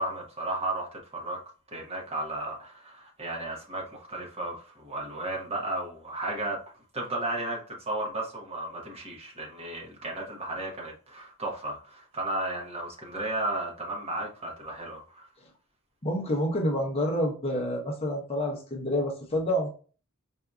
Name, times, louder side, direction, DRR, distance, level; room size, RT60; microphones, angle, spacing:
voice 1, 0.0-1.4 1.7-6.6 6.9-15.3, right 2 dB, 30° right, 1.1 m, -34 dB
voice 2, 16.0-19.7, equal, 30° left, 0.8 m, -28 dB
4.6 x 2.6 x 2.3 m
head